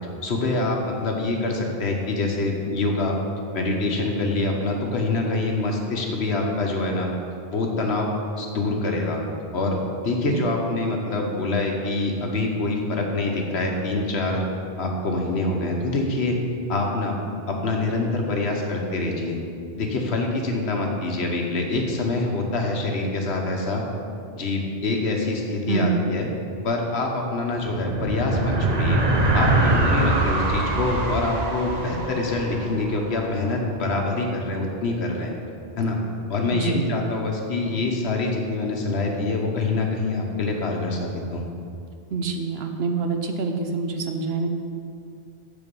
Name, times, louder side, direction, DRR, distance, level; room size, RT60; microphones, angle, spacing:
voice 1, 0.2-3.2 3.5-7.1 7.5-9.2 9.5-9.8 10.0-14.4 14.8-16.4 16.7-17.1 17.5-19.4 19.8-23.8 24.4-26.3 26.6-29.0 29.3-35.3 35.8-36.0 36.3-41.4, left 2 dB, 80° left, 1 dB, 1.4 m, -25 dB
voice 2, 25.7-26.0 36.5-36.9 42.1-44.5, right 4 dB, 70° right, 5 dB, 1.0 m, -26 dB
sound 1, 27.6-33.3, right 2 dB, 45° right, 0.8 m, -23 dB
7.0 x 7.0 x 5.3 m, 2.4 s
omnidirectional pair, 1.1 m